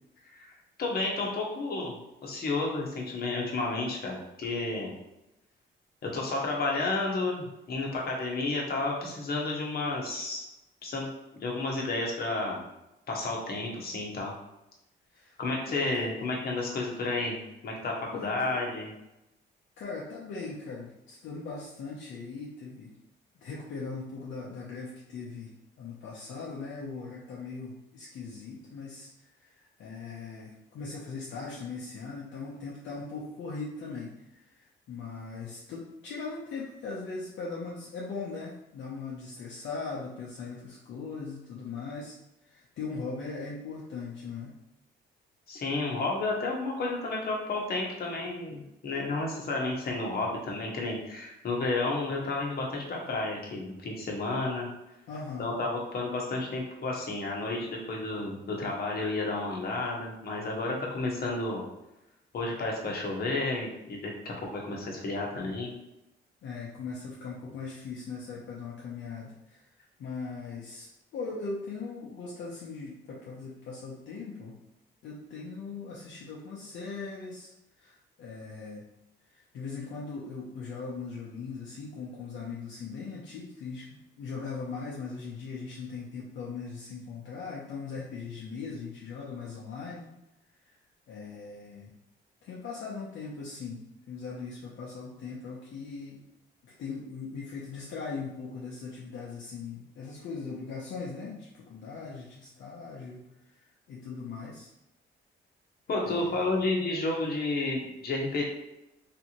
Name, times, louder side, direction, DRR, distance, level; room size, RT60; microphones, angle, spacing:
voice 1, 0.8-1.9 2.2-4.9 6.0-10.5 10.8-11.1 11.4-12.6 13.1-14.3 15.4-17.4 17.6-18.9 45.5-54.7 55.4-61.6 62.3-65.7 105.9-108.4, left 2 dB, 50° left, -2 dB, 1.0 m, -31 dB
voice 2, 15.7-16.0 18.1-18.6 19.8-23.0 23.4-42.2 42.5-44.6 55.1-55.5 66.4-69.7 70.0-74.6 75.0-77.5 77.8-78.8 79.3-90.1 90.6-90.7 91.1-91.9 92.4-96.2 96.6-103.2 103.4-104.7 106.0-106.5, left 4 dB, 70° left, -5 dB, 0.7 m, -40 dB
3.4 x 2.6 x 2.9 m, 0.89 s
cardioid pair, 90°, 20 cm